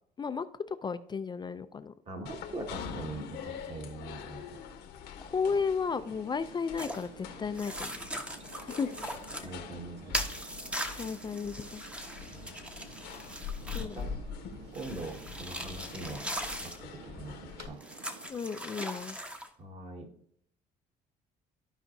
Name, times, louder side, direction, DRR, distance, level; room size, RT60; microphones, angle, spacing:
voice 1, 0.2-1.9 5.2-8.0 8.6-8.9 9.4-9.5 11.0-11.8 13.7-14.0 18.3-19.2, left 5 dB, 25° left, 11 dB, 0.4 m, -34 dB
voice 2, 2.0-4.6 9.4-10.2 12.3-12.5 13.6-14.1 14.7-16.2 16.6-17.4 17.6-17.8 19.6-20.1, right 2 dB, 40° right, 2 dB, 1.8 m, -42 dB
sound 1, 2.3-17.7, left 6 dB, 85° left, 1.2 m, -44 dB
sound 2, 5.9-18.3, right 5 dB, 85° right, 0.9 m, -52 dB
sound 3, 6.8-7.1 7.5-9.5 10.1-14.0 14.7-16.8 17.8-19.5, equal, 5° right, 0.9 m, -39 dB
14.5 x 4.9 x 2.7 m, 0.66 s
cardioid pair, 110°, 17 cm